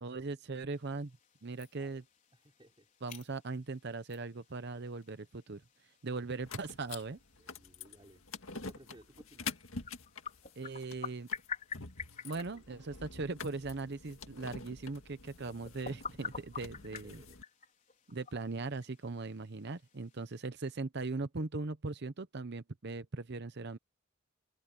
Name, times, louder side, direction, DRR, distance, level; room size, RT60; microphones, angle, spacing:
voice 1, 0.0-1.2 1.4-2.0 3.0-5.6 6.0-7.2 10.6-11.3 12.2-17.2 18.1-23.8, right 3 dB, 55° right, 0.8 m, -39 dB
sound 1, 0.7-20.4, left 6 dB, 40° left, 4.9 m, -49 dB
voice 2, 1.6-2.0 2.3-2.9 7.4-9.6 16.9-17.4, right 1 dB, 25° right, 4.3 m, -59 dB
sound 2, 6.4-17.4, left 4 dB, 80° left, 1.9 m, -47 dB
head